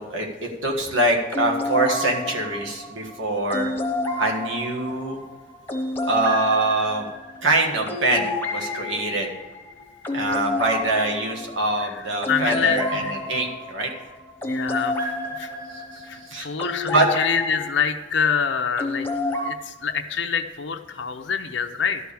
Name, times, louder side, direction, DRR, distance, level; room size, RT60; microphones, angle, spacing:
voice 1, 0.0-3.7 4.2-5.2 6.1-7.1 7.4-9.3 10.1-13.9 15.7-16.5 16.9-17.1, right 2 dB, 75° right, 1 dB, 1.6 m, -24 dB
sound 1, 1.3-17.7 18.8-19.5, left 2 dB, 10° left, 1.0 m, -29 dB
voice 2, 12.3-13.1 14.5-15.1 15.4-15.5 16.1-19.1 19.4-22.0, left 6 dB, 65° left, 6 dB, 0.6 m, -26 dB
12.5 x 4.7 x 8.5 m, 1.1 s
head